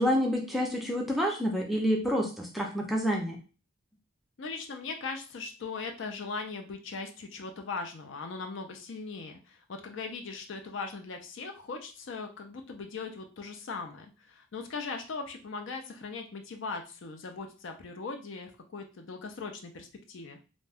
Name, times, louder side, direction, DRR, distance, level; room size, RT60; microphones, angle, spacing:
voice 1, 0.0-3.4, equal, ahead, -1 dB, 0.4 m, -28 dB
voice 2, 4.4-20.4, left 4 dB, 60° left, 5 dB, 0.4 m, -39 dB
2.5 x 2.2 x 3.4 m, 0.35 s
head